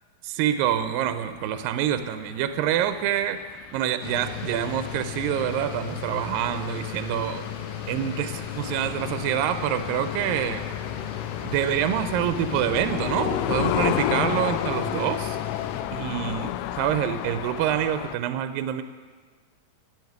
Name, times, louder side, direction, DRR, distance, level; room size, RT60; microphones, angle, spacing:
voice 1, 0.2-3.4 3.7-7.4 7.9-10.6 11.4-15.4 15.9-16.5 16.8-18.8, right 10 dB, 80° right, 10 dB, 2.1 m, -26 dB
sound 1, 0.7-18.2, left 12 dB, 90° left, 2.6 m, -33 dB
sound 2, 4.0-15.8, left 8 dB, 75° left, 3.0 m, -35 dB
14.5 x 8.6 x 9.3 m, 1.5 s
omnidirectional pair, 4.5 m